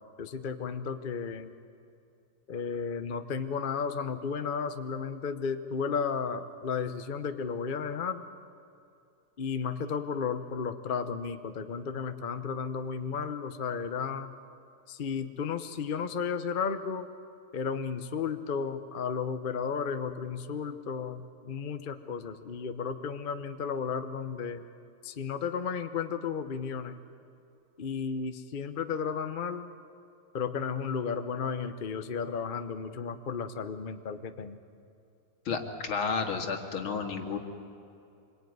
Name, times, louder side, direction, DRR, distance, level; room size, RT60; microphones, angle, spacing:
voice 1, 0.2-1.5 2.5-8.3 9.4-14.3 14.9-17.1 17.5-24.6 25.0-27.0 27.8-29.7 30.3-34.6, left 6 dB, 50° left, 9 dB, 0.5 m, -33 dB
voice 2, 35.5-37.4, left 5 dB, 70° left, 4 dB, 2.8 m, -31 dB
26.5 x 22.5 x 9.5 m, 2.6 s
omnidirectional pair, 2.4 m